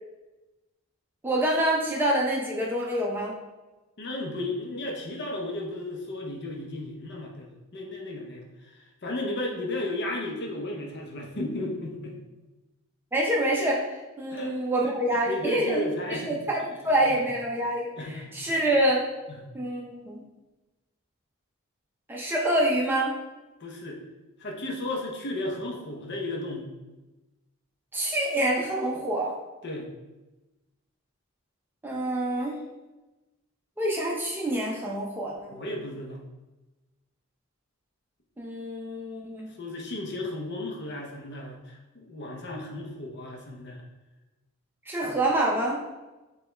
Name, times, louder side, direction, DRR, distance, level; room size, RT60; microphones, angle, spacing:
voice 1, 1.2-3.3 13.1-15.8 16.2-19.0 19.5-20.2 22.1-23.1 27.9-29.3 31.8-32.6 33.8-35.5 38.4-39.5 44.9-45.8, right 1 dB, 10° right, -3 dB, 0.5 m, -26 dB
voice 2, 4.0-12.2 14.3-14.5 14.8-16.5 16.9-17.2 18.0-18.4 19.3-19.5 23.6-24.0 24.4-26.7 29.6-29.9 35.5-36.2 39.6-43.8, left 1 dB, 50° left, 1 dB, 0.6 m, -34 dB
4.9 x 2.3 x 3.2 m, 1.1 s
head